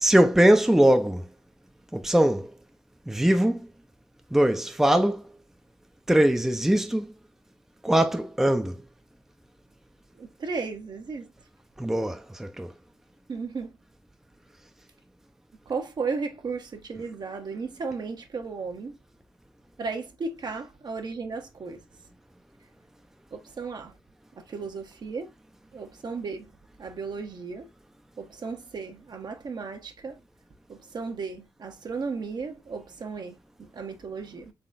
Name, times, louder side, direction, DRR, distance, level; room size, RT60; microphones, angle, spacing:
voice 1, 0.0-1.3 1.9-2.5 3.1-3.7 4.3-5.2 6.1-7.1 7.8-8.8 11.8-12.7, right 1 dB, 5° right, 0.6 m, -21 dB
voice 2, 10.2-11.3 13.3-13.7 15.7-19.0 19.8-21.8 23.3-23.9 24.5-25.3 25.7-26.5 26.8-27.7 28.2-30.2 30.7-34.5, right 4 dB, 55° right, 1.0 m, -35 dB
3.8 x 3.6 x 2.5 m
supercardioid pair, 55°, 8 cm